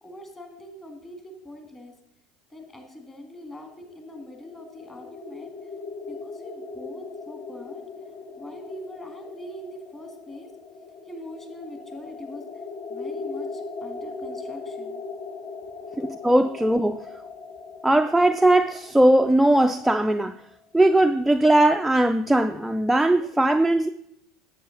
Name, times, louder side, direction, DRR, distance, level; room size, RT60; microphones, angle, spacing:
voice 1, 0.0-2.0 2.5-5.5 6.1-7.8 8.4-10.5 11.0-12.4 12.9-15.0 15.9-16.0, equal, 15° left, 2.0 m, -42 dB
sound 1, 3.6-20.5, left 4 dB, 45° left, 0.7 m, -39 dB
voice 2, 16.0-17.0 17.8-20.3 20.7-23.9, right 1 dB, 5° right, 0.3 m, -19 dB
10.0 x 7.6 x 3.9 m
hypercardioid pair, 80°, 3 cm